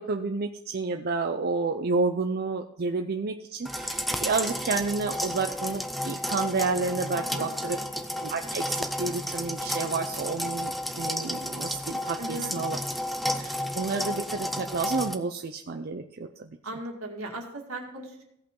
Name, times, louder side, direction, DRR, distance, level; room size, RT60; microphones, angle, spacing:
voice 1, 0.0-7.8 8.2-12.8 13.4-16.6, right 4 dB, 45° right, 5 dB, 0.5 m, -30 dB
sound 1, 3.6-15.1, equal, ahead, 0.5 m, -32 dB
voice 2, 7.1-7.8 12.2-12.6 16.6-18.3, right 1 dB, 70° right, 1 dB, 2.2 m, -38 dB
16.5 x 5.7 x 3.8 m, 0.79 s
head